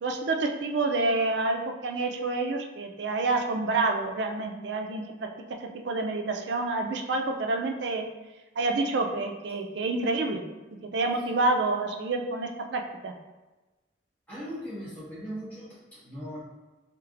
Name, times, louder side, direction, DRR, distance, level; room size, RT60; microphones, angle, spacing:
voice 1, 0.0-5.3 5.6-8.1 8.6-10.4 10.8-13.1, right 3 dB, 70° right, 3 dB, 0.4 m, -28 dB
voice 2, 14.3-16.4, equal, 10° left, -11 dB, 1.3 m, -39 dB
4.4 x 3.3 x 2.5 m, 1.1 s
head